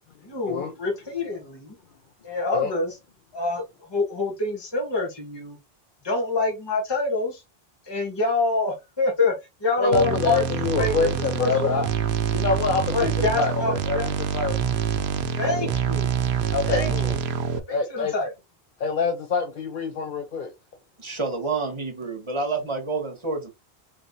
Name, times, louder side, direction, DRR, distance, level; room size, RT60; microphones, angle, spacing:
voice 1, 0.2-1.7 2.2-2.9 3.3-3.6 3.9-5.6 6.0-7.4 7.9-9.3 9.6-10.4 10.8-11.1 11.4-11.7 12.9-14.1 15.4-16.1 16.6-16.9 17.7-18.3, left 3 dB, 25° left, 1.2 m, -26 dB
voice 2, 9.8-11.9 12.3-14.6 16.5-17.2 17.7-18.1 18.8-20.5, left 4 dB, 60° left, 0.8 m, -26 dB
sound 1, 9.9-17.6, right 7 dB, 90° right, 0.9 m, -26 dB
voice 3, 21.0-23.5, right 3 dB, 30° right, 1.4 m, -29 dB
4.5 x 3.1 x 2.7 m
omnidirectional pair, 1.0 m